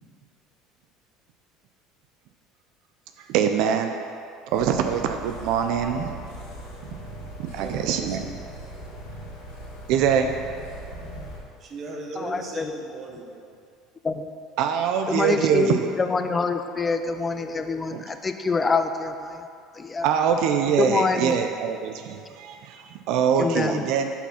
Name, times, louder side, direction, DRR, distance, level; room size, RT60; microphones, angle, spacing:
voice 1, 3.2-3.9 4.5-6.2 7.4-8.3 9.9-10.3 14.6-15.9 17.9-18.0 20.0-24.1, right 8 dB, 65° right, 6 dB, 0.4 m, -24 dB
sound 1, 4.5-11.4, equal, 90° left, 1.4 m, -39 dB
voice 2, 7.5-8.9 11.6-13.5, right 2 dB, 35° right, 0 dB, 0.9 m, -39 dB
voice 3, 12.2-12.8 14.0-14.2 15.1-19.5 19.7-20.1 20.8-21.4 23.4-23.9, left 4 dB, 20° left, 8 dB, 0.4 m, -25 dB
5.9 x 4.2 x 5.6 m, 2.4 s
cardioid pair, 125°, 0 cm